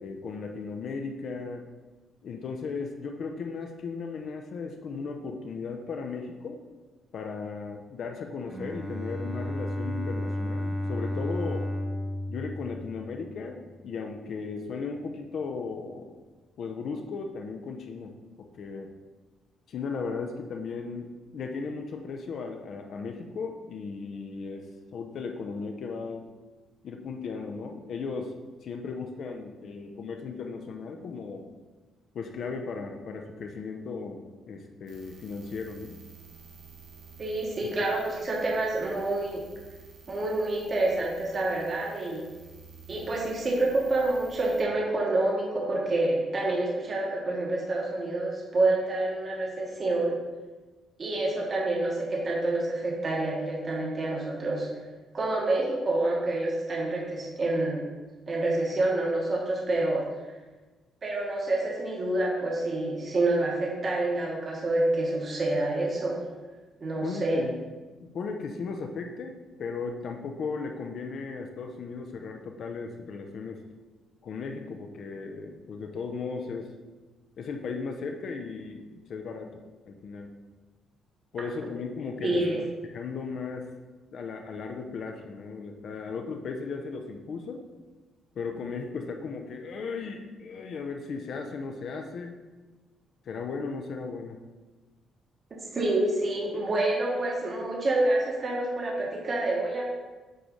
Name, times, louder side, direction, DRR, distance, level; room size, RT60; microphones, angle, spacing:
voice 1, 0.0-1.6 2.2-6.6 7.1-11.7 12.3-16.2 16.6-18.9 19.7-26.3 26.8-28.3 28.6-31.5 32.1-36.0 67.0-67.5 68.0-73.6 74.2-76.7 77.4-79.6 79.9-80.3 81.3-82.4 82.8-83.7 84.1-87.6 88.3-92.3 93.3-94.4, left 4 dB, 50° left, 4 dB, 0.6 m, -36 dB
Bowed string instrument, 8.5-13.4, left 1 dB, 5° right, 1.1 m, -33 dB
sound 1, 34.9-44.6, right 5 dB, 70° right, 1.2 m, -51 dB
voice 2, 37.2-39.4 40.1-42.3 42.9-50.2 51.0-54.7 55.1-57.9 58.3-60.1 61.0-66.2 66.8-67.4 82.2-82.6 95.5-99.8, right 2 dB, 30° right, -3 dB, 1.1 m, -27 dB
7.7 x 3.1 x 5.0 m, 1.2 s
cardioid pair, 155°, 0 cm